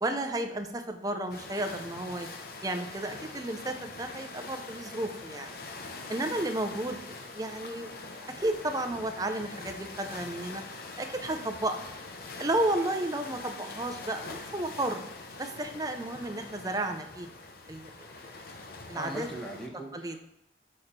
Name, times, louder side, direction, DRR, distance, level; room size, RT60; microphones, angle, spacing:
voice 1, 0.0-2.3 2.6-5.5 6.1-7.0 7.3-7.9 8.4-10.6 11.0-11.8 12.4-15.0 15.4-17.3 17.7-18.3 18.9-19.3 19.9-20.1, right 1 dB, 20° right, 6 dB, 0.6 m, -32 dB
sound 1, 1.3-19.7, left 3 dB, 55° left, 0.8 m, -43 dB
voice 2, 18.9-20.2, right 1 dB, 5° left, -3 dB, 1.2 m, -40 dB
6.3 x 4.3 x 5.1 m, 0.79 s
head